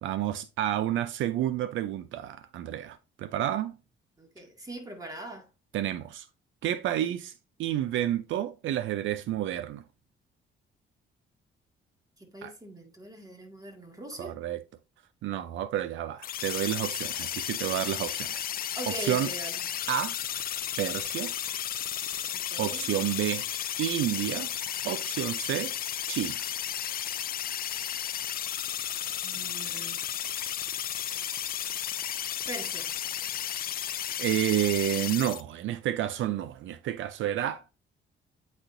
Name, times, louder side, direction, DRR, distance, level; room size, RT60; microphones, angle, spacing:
voice 1, 0.0-3.7 5.7-6.3 6.6-7.3 7.6-9.8 12.4-12.5 14.2-14.6 15.2-18.5 19.0-19.3 19.9-20.2 20.8-21.3 22.6-23.4 23.8-24.5 24.8-25.7 26.1-26.5 33.8-33.9 34.2-37.6, right 12 dB, 75° right, 0.5 m, -30 dB
voice 2, 4.2-5.5 12.2-14.3 18.7-19.6 22.3-22.9 29.2-30.0 32.5-33.0, right 1 dB, 20° right, 2.0 m, -41 dB
sound 1, 16.2-35.4, left 10 dB, 50° left, 0.4 m, -33 dB
8.8 x 4.2 x 2.5 m
cardioid pair, 90°, 20 cm